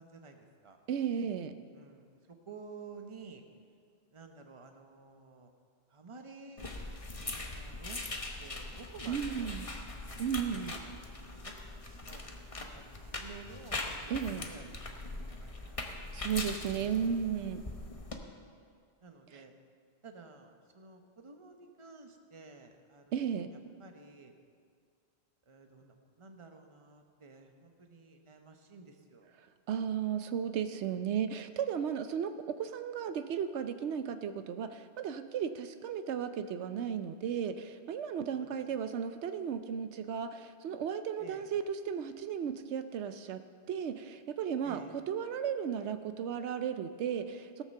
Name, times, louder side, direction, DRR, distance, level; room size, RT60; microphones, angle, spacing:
voice 1, 0.0-0.8 1.7-3.4 4.1-5.5 5.9-6.7 7.1-9.6 10.1-11.5 11.9-16.0 16.7-17.1 19.0-19.5 20.0-23.1 23.5-24.3 25.5-29.3 38.3-38.5 38.7-38.9 41.2-41.5 44.6-44.9, right 4 dB, 30° right, 5 dB, 1.0 m, -52 dB
voice 2, 0.9-1.5 9.1-9.7 10.2-10.7 14.1-14.5 16.1-17.6 19.3-19.4 23.1-23.5 29.7-43.4 43.7-47.6, right 8 dB, 80° right, 10 dB, 0.9 m, -35 dB
sound 1, 6.6-18.2, left 2 dB, 30° left, 1.0 m, -41 dB
17.5 x 6.5 x 6.6 m, 2.2 s
omnidirectional pair, 1.1 m